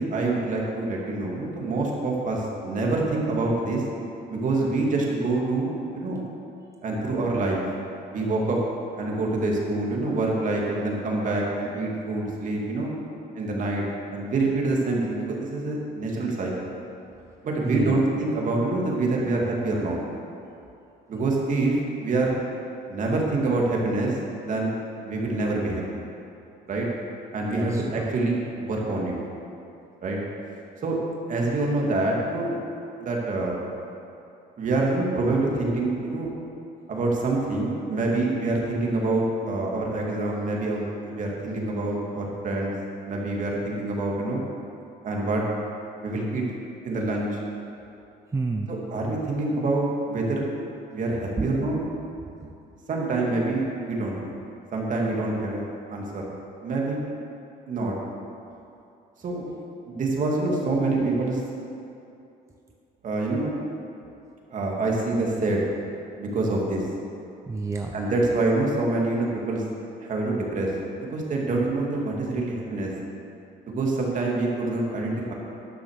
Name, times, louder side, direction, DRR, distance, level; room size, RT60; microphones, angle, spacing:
voice 1, 0.0-3.8 4.3-6.2 6.8-7.6 8.1-8.6 8.9-12.9 13.3-13.8 14.1-16.7 17.4-20.0 21.1-22.3 22.9-24.7 25.0-25.8 26.7-26.9 27.3-29.2 30.0-30.2 30.8-31.0 31.3-32.6 33.0-33.6 34.6-36.3 36.9-42.7 43.1-44.4 45.0-45.4 46.0-46.4 46.8-47.4 48.7-50.5 50.9-51.8 52.9-54.3 54.7-55.6 55.9-56.3 56.6-57.0 57.7-58.0 59.2-59.4 59.9-61.4 63.0-63.5 64.5-65.7 66.2-66.9 67.9-69.6 70.0-70.7 71.0-72.9 73.6-75.3, right 2 dB, 50° right, -2 dB, 2.3 m, -26 dB
voice 2, 17.6-18.0 27.5-28.1 48.3-48.7 51.4-51.7 52.2-52.5 59.9-60.0 61.0-61.1 67.5-67.9, right 3 dB, 15° right, 2 dB, 0.7 m, -30 dB
11.0 x 6.5 x 6.6 m, 2.7 s
cardioid pair, 110°, 17 cm